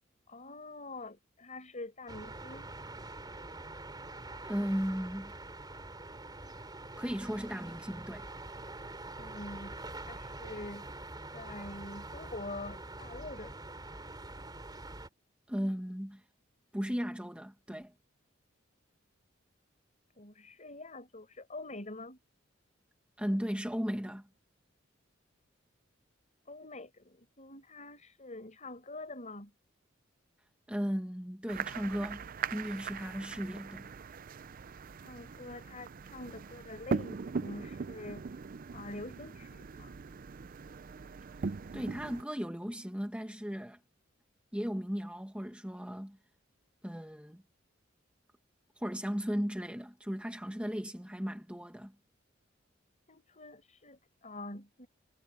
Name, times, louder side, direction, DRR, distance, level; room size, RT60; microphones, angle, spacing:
voice 1, 0.3-2.7 9.2-9.8 10.1-10.9 11.3-13.6 20.2-22.2 26.5-29.5 35.0-38.4 38.7-39.9 53.1-54.9, left 2 dB, 40° left, 4.7 m, -45 dB
sound 1, 2.1-15.1, right 2 dB, 20° right, 3.5 m, -45 dB
voice 2, 4.4-5.3 7.0-8.2 15.5-16.2 16.7-17.9 23.2-24.3 30.7-33.9 41.7-43.8 44.5-46.2 46.8-47.4 48.8-51.9, equal, 5° right, 1.6 m, -36 dB
sound 2, 31.5-42.2, right 5 dB, 45° right, 0.5 m, -40 dB
head